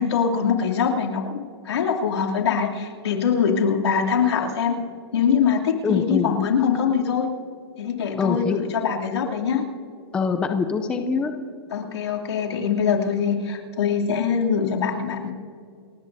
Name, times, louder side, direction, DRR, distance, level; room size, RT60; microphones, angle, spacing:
voice 1, 0.0-4.8 5.1-7.3 7.8-9.6 11.7-15.3, left 7 dB, 80° left, -1 dB, 2.9 m, -23 dB
voice 2, 5.8-6.3 8.2-8.6 10.1-11.3, left 5 dB, 5° left, 6 dB, 0.5 m, -23 dB
29.0 x 14.5 x 2.7 m, 2.4 s
hypercardioid pair, 170°, 14 cm